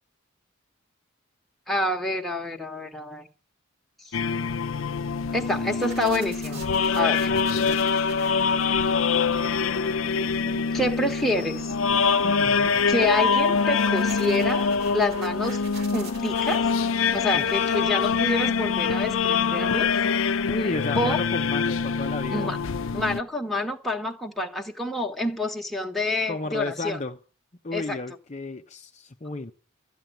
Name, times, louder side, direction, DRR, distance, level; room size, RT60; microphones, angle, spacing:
voice 1, 1.7-3.3 4.0-4.2 5.3-7.3 10.7-11.6 12.5-12.6 12.9-14.7 14.9-15.6 15.9-16.6 17.1-19.9 21.0-21.2 22.3-22.6 22.9-27.0 27.7-28.0, left 2 dB, ahead, 1.4 m, -27 dB
sound 1, 4.1-23.2, left 5 dB, 75° left, 0.6 m, -24 dB
sound 2, 4.5-18.8, right 2 dB, 50° right, 2.0 m, -43 dB
voice 2, 7.3-7.8 12.2-12.7 17.3-17.9 20.5-22.5 26.3-27.2 27.6-29.5, left 2 dB, 35° left, 0.7 m, -33 dB
13.0 x 8.1 x 9.1 m
head